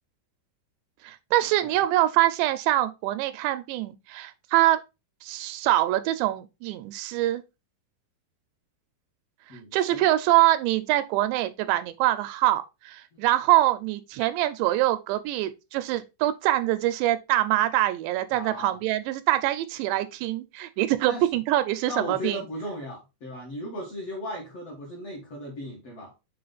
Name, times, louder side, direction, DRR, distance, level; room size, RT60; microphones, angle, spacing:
voice 1, 1.0-4.8 5.2-7.4 9.7-22.4, right 15 dB, 85° right, 2.7 m, -24 dB
voice 2, 9.5-10.1 13.1-13.2 18.3-18.8 21.1-21.2 21.9-26.1, left 1 dB, 50° left, 2.1 m, -37 dB
6.8 x 3.6 x 3.9 m
omnidirectional pair, 5.1 m